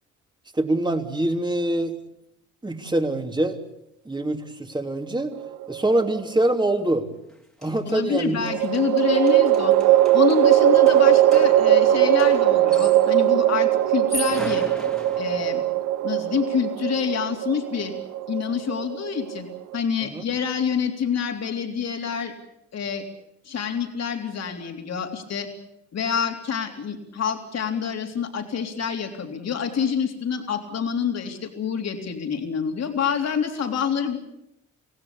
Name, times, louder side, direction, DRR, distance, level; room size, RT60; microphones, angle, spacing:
voice 1, 0.5-2.0 2.6-3.6 4.0-5.3 5.7-7.1 7.6-8.5 20.0-20.2, right 1 dB, 15° right, 5 dB, 3.1 m, -24 dB
sound 1, 5.4-6.2 8.4-19.8, right 12 dB, 85° right, 1.0 m, -20 dB
sound 2, 7.3-7.4 7.6-13.2 13.9-15.7, equal, ahead, 3.1 m, -38 dB
voice 2, 7.8-9.7 10.1-14.7 15.2-15.6 16.0-17.9 18.3-19.5 19.7-22.3 22.7-23.1 23.5-25.5 25.9-34.2, left 7 dB, 60° left, 3 dB, 3.7 m, -27 dB
26.0 x 17.0 x 8.7 m, 0.81 s
cardioid pair, 90°, 30 cm